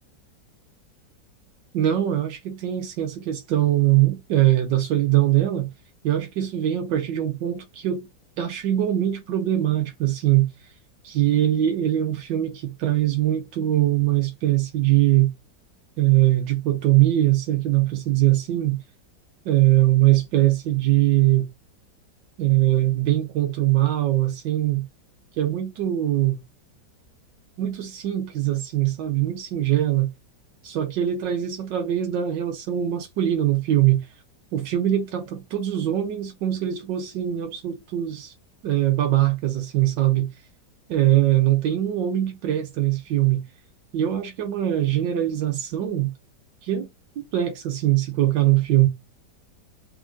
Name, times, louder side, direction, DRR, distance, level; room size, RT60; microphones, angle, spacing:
voice 1, 1.7-5.7 6.0-8.1 8.4-10.5 11.0-15.3 16.0-18.8 19.5-21.4 22.4-24.9 25.4-26.4 27.6-30.1 30.6-34.0 34.5-38.3 38.6-40.3 40.9-43.4 43.9-46.1 46.6-46.9 47.3-48.9, right 13 dB, 90° right, 1.5 m, -22 dB
3.7 x 3.6 x 3.6 m
omnidirectional pair, 1.9 m